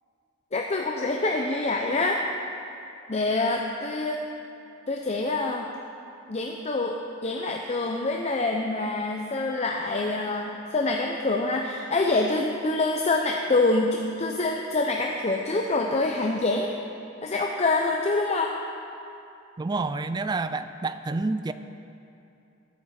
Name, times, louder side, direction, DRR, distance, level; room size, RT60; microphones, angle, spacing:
voice 1, 0.5-2.2 3.1-4.3 4.9-5.7 6.3-16.7 17.2-18.6, left 2 dB, 35° left, 1 dB, 0.6 m, -26 dB
voice 2, 19.6-21.5, right 3 dB, 20° right, 11 dB, 0.3 m, -28 dB
19.5 x 8.5 x 4.3 m, 2.7 s
head